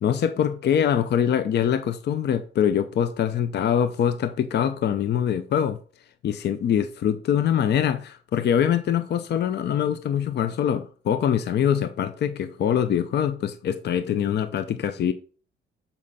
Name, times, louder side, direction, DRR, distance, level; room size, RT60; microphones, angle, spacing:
voice 1, 0.0-5.8 6.2-15.1, left 9 dB, 55° left, 0.6 m, -24 dB
7.4 x 5.4 x 4.2 m
cardioid pair, 90°, 20 cm